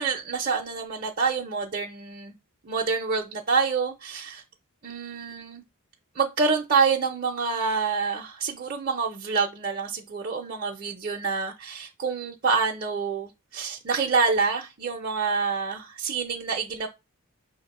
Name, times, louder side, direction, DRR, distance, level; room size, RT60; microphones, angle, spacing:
voice 1, 0.0-2.3 2.6-4.4 4.8-5.6 6.2-16.9, right 5 dB, 45° right, 0.5 m, -27 dB
5.7 x 2.1 x 4.1 m
head